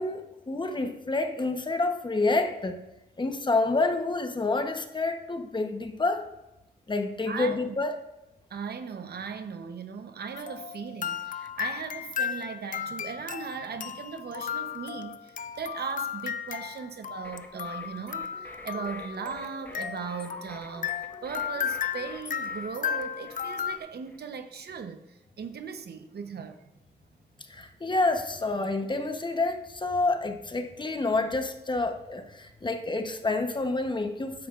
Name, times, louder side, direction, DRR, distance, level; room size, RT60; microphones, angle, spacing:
voice 1, 0.0-2.8 3.2-6.3 6.9-8.0 27.5-34.5, left 3 dB, 25° left, 6 dB, 1.0 m, -28 dB
voice 2, 7.3-7.8 8.5-21.0 21.2-26.6, right 6 dB, 70° right, 8 dB, 0.9 m, -38 dB
sound 1, 10.3-23.8, left 8 dB, 50° left, 0.4 m, -35 dB
sound 2, 17.2-24.3, left 1 dB, 10° left, 1.3 m, -49 dB
13.0 x 9.9 x 2.5 m, 0.91 s
wide cardioid pair, 110°, 17 cm